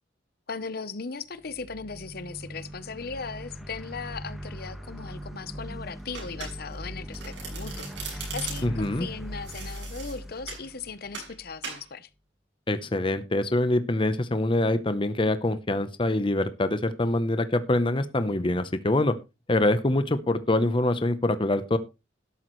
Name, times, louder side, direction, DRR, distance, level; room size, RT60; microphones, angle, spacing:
voice 1, 0.5-12.1, left 5 dB, 55° left, 0.8 m, -38 dB
sound 1, 1.4-11.6, equal, ahead, 1.5 m, -40 dB
Domestic sounds home sounds, 6.1-6.8 7.1-8.9 9.5-10.7 11.1-11.3 11.6-11.9, right 5 dB, 70° right, 7.0 m, -39 dB
voice 2, 8.6-9.1 12.7-19.1 19.5-21.8, left 1 dB, 25° left, 0.8 m, -25 dB
12.5 x 12.0 x 3.1 m
head